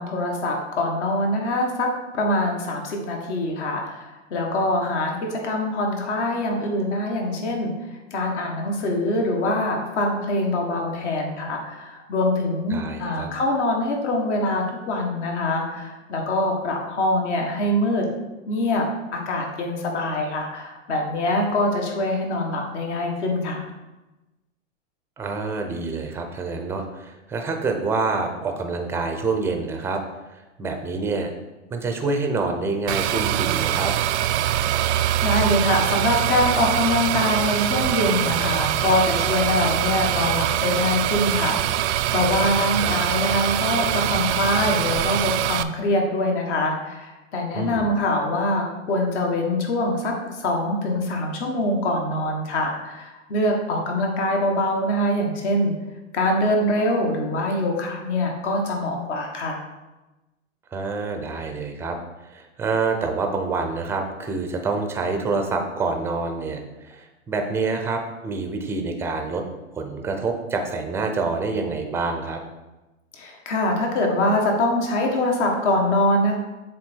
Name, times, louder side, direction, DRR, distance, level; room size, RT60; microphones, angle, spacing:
voice 1, 0.0-7.7 8.1-18.1 18.5-18.9 19.1-23.7 35.2-55.7 56.1-59.6 73.2-76.4, left 1 dB, 65° left, 1 dB, 1.8 m, -24 dB
voice 2, 12.7-13.3 25.2-30.0 30.3-31.3 31.7-33.9 42.8-43.0 47.5-47.9 60.7-69.4 69.7-72.4, right 3 dB, 5° right, 4 dB, 0.4 m, -27 dB
sound 1, 32.9-45.6, right 12 dB, 65° right, 0.5 m, -23 dB
7.5 x 3.5 x 4.4 m, 1.1 s
hypercardioid pair, 135°, 38 cm